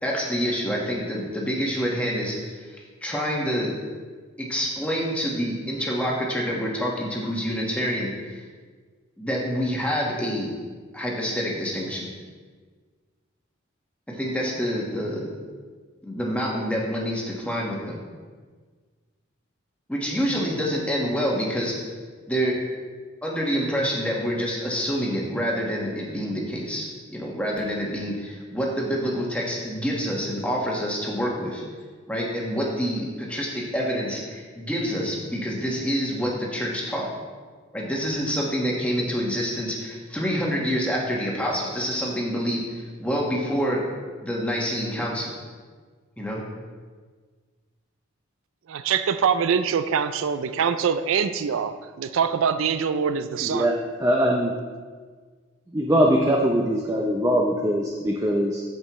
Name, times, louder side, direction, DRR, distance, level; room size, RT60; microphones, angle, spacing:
voice 1, 0.0-3.7 4.4-8.4 9.2-10.5 10.9-12.1 14.1-15.3 16.0-18.0 19.9-21.7 22.3-22.5 23.2-31.6 32.1-37.1 37.7-43.8 44.2-45.3 46.2-46.4, equal, 5° left, -3 dB, 1.3 m, -27 dB
voice 2, 48.7-53.7, right 7 dB, 80° right, 11 dB, 0.4 m, -24 dB
voice 3, 53.4-54.5 55.7-58.6, equal, 15° right, 0 dB, 0.5 m, -22 dB
14.0 x 5.3 x 3.1 m, 1.5 s
head